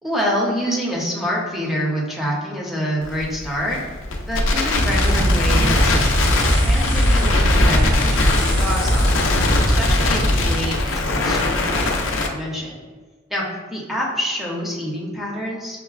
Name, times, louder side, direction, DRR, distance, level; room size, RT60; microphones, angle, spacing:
voice 1, 0.0-3.8 4.3-9.1 9.8-12.7 13.3-13.4 13.7-15.8, equal, ahead, -4 dB, 0.6 m, -26 dB
Crackle, 3.0-12.3, left 3 dB, 70° left, 0.5 m, -22 dB
sound 1, 4.7-10.5, equal, 60° right, 0.5 m, -19 dB
5.6 x 2.0 x 2.3 m, 1.4 s
head